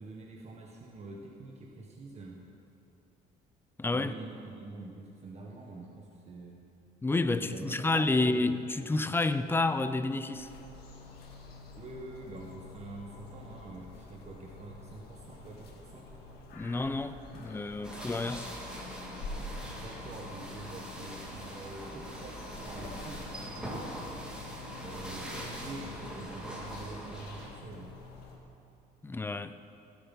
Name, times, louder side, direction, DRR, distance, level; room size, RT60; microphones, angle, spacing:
voice 1, 0.0-2.4 3.9-6.6 7.4-8.9 11.8-16.1 19.7-27.9, right 3 dB, 40° right, 1.4 m, -46 dB
voice 2, 3.8-4.1 7.0-10.5 16.5-18.5 29.0-29.6, left 2 dB, 15° left, 0.5 m, -30 dB
sound 1, 10.3-28.4, left 3 dB, 70° left, 1.8 m, -48 dB
sound 2, 17.8-27.5, equal, 5° right, 2.2 m, -42 dB
16.0 x 7.9 x 5.6 m
cardioid pair, 110°, 17 cm